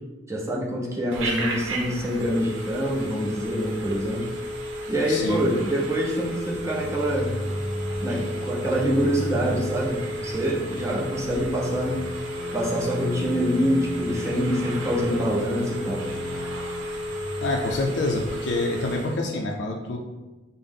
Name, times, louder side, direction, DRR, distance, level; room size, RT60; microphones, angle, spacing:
voice 1, 0.3-4.3 4.9-7.3 8.0-12.0 12.5-16.2, equal, 15° right, -3 dB, 0.6 m, -26 dB
Telephone, 1.1-19.2, equal, 85° right, 0.7 m, -33 dB
voice 2, 5.1-5.4 17.0-17.1 17.4-20.0, left 2 dB, 65° left, 0 dB, 0.4 m, -27 dB
sound 1, 6.5-17.5, equal, 15° left, 1.0 m, -35 dB
5.4 x 2.0 x 3.6 m, 1.2 s
head